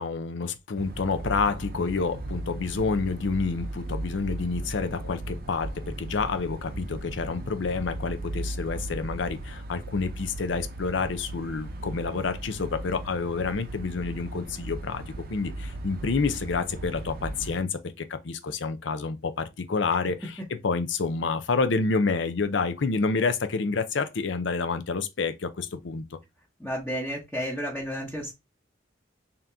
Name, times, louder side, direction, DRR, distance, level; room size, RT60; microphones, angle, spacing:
voice 1, 0.0-15.0 15.3-20.4 20.6-26.2, left 4 dB, 65° left, 0.6 m, -28 dB
sound 1, 0.8-17.6, right 1 dB, 50° right, 0.6 m, -37 dB
voice 2, 26.6-28.3, equal, 5° left, 1.1 m, -32 dB
3.8 x 2.9 x 3.4 m
head